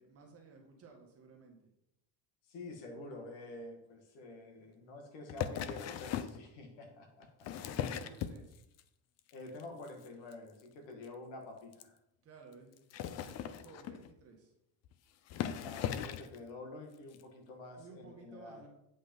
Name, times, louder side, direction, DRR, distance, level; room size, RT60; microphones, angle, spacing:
voice 1, 0.0-1.7 7.7-8.6 12.2-12.7 13.1-14.5 17.8-18.7, right 4 dB, 30° right, 0 dB, 1.7 m, -56 dB
voice 2, 2.5-7.5 9.3-12.0 15.6-18.6, left 2 dB, 70° left, 3 dB, 2.0 m, -48 dB
sound 1, 5.3-6.4 7.2-8.8 9.2-9.6 9.9-10.1 10.3-10.4 10.6-10.7 11.0-11.1 11.7-11.8 12.8-14.1 14.8-14.9 15.3-16.4 17.1-17.2, left 9 dB, 40° left, 0.4 m, -38 dB
8.4 x 5.3 x 5.4 m, 0.82 s
cardioid pair, 175°, 45 cm